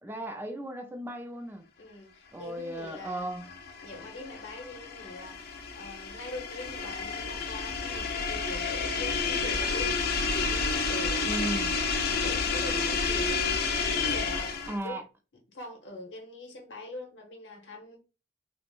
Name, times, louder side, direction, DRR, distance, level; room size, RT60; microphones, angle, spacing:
voice 1, 0.0-1.6 2.3-3.5 11.2-11.7 14.7-15.0, right 1 dB, 15° right, 0.4 m, -36 dB
voice 2, 1.8-3.3 3.8-9.9 10.3-11.5 12.0-13.4 13.9-15.0 15.5-18.0, left 2 dB, 90° left, 0.9 m, -43 dB
sound 1, 3.0-14.9, left 4 dB, 60° left, 0.4 m, -30 dB
3.5 x 2.0 x 2.4 m
head